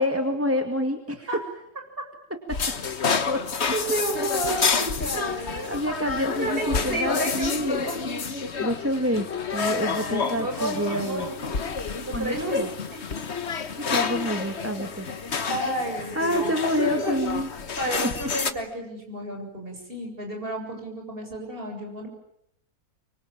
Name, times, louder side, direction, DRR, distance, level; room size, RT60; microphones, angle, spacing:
voice 1, 0.0-1.3 2.5-2.6 3.3-3.4 5.1-7.9 8.6-11.3 12.1-12.7 13.9-15.1 16.1-17.5 18.0-18.1, equal, 10° right, 5 dB, 2.1 m, -27 dB
sound 1, 2.5-18.5, left 5 dB, 50° left, 1.6 m, -29 dB
voice 2, 3.7-5.8 6.4-8.0 9.9-11.5 12.0-12.6 12.9-13.0 15.0-16.5 17.0-17.2 17.8-22.1, right 1 dB, 40° right, 3 dB, 7.8 m, -31 dB
25.0 x 25.0 x 9.0 m, 0.76 s
omnidirectional pair, 1.5 m